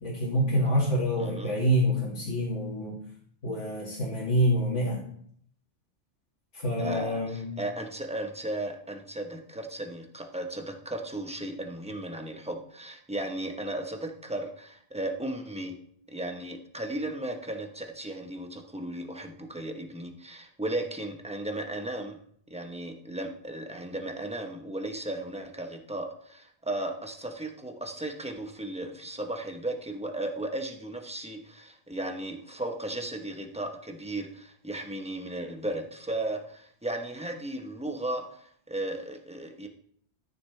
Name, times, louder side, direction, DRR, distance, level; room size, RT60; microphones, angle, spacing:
voice 1, 0.0-3.0 3.4-5.0 6.6-7.5, equal, 85° left, -6 dB, 2.4 m, -26 dB
voice 2, 1.2-1.6 6.8-15.8 16.1-22.2 22.5-39.7, right 1 dB, 5° right, 4 dB, 0.9 m, -35 dB
13.0 x 6.6 x 3.3 m, 0.64 s
omnidirectional pair, 1.2 m